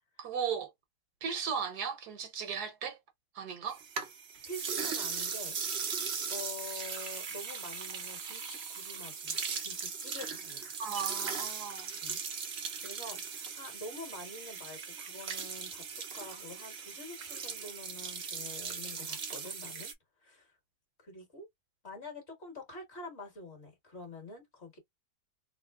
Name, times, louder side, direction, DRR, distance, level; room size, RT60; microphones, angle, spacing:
voice 1, 0.2-0.7 1.2-3.0 3.3-3.8 10.8-11.9, right 7 dB, 75° right, 1.5 m, -36 dB
sound 1, 3.7-19.9, right 6 dB, 55° right, 0.8 m, -38 dB
voice 2, 4.5-5.5 5.9-10.7 12.0-12.2 12.8-19.9 20.2-20.6 21.0-21.5 21.8-24.8, left 2 dB, 45° left, 1.7 m, -47 dB
3.7 x 2.0 x 3.4 m
omnidirectional pair, 1.7 m